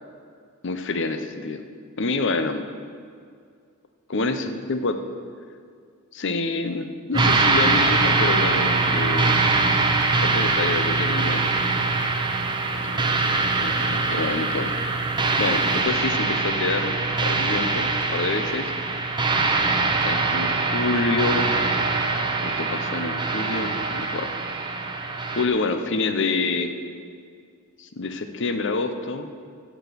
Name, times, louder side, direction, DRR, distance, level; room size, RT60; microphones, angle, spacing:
voice 1, 0.6-1.6 2.0-2.6 4.1-5.0 6.1-9.4 10.2-11.4 12.7-13.0 13.6-14.8 15.4-18.7 19.8-21.5 22.4-24.3 25.4-26.7 27.8-29.3, left 3 dB, 60° left, 8 dB, 0.8 m, -27 dB
sound 1, 7.1-25.4, right 3 dB, 20° right, 0.8 m, -23 dB
15.0 x 6.1 x 6.9 m, 2.2 s
head